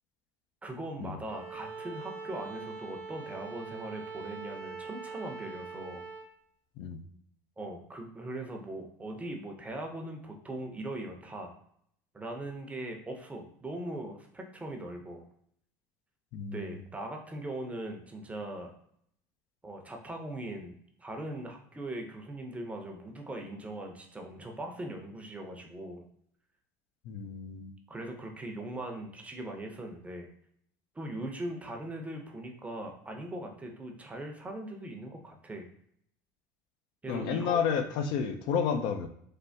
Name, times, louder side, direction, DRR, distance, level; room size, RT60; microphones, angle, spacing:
voice 1, 0.6-6.0 7.6-11.5 12.1-15.2 16.5-18.7 19.6-20.7 21.0-26.0 27.9-30.3 31.0-35.7 37.0-37.6, right 1 dB, 15° right, 2 dB, 0.6 m, -40 dB
Bowed string instrument, 1.2-6.3, right 4 dB, 80° right, 0.6 m, -42 dB
voice 2, 16.3-16.8 27.1-27.7 37.1-39.1, left 7 dB, 65° left, 6 dB, 0.4 m, -31 dB
3.3 x 2.1 x 2.6 m, 0.66 s
supercardioid pair, 90°, 9 cm